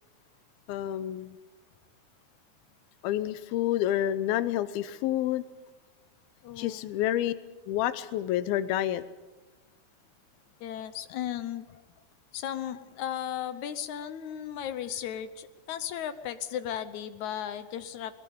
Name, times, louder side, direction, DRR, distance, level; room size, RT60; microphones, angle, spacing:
voice 1, 0.7-1.4 3.0-5.4 6.6-7.3 7.7-9.0, left 12 dB, 85° left, 14 dB, 2.7 m, -28 dB
voice 2, 6.4-6.9 10.6-11.8 12.3-18.2, left 10 dB, 70° left, 12 dB, 1.9 m, -36 dB
22.0 x 20.0 x 7.0 m, 1.2 s
omnidirectional pair, 4.2 m